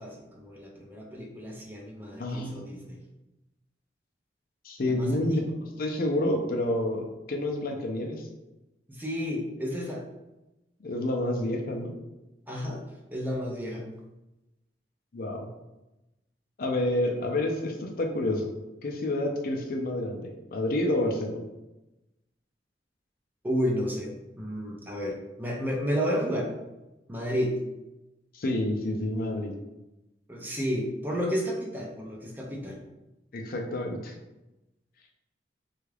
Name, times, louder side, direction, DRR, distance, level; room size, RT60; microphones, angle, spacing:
voice 1, 0.0-3.0 4.9-5.5 8.9-10.0 12.5-12.8 13.1-13.8 23.4-26.5 27.1-27.5 30.3-32.8, equal, 10° right, -1 dB, 0.5 m, -31 dB
voice 2, 2.2-3.0 4.6-5.4 5.8-8.3 10.8-12.0 15.1-15.5 16.6-18.5 18.8-21.4 28.3-29.5 33.3-34.1, left 1 dB, 55° left, 2 dB, 0.5 m, -29 dB
3.5 x 2.3 x 3.2 m, 0.99 s
head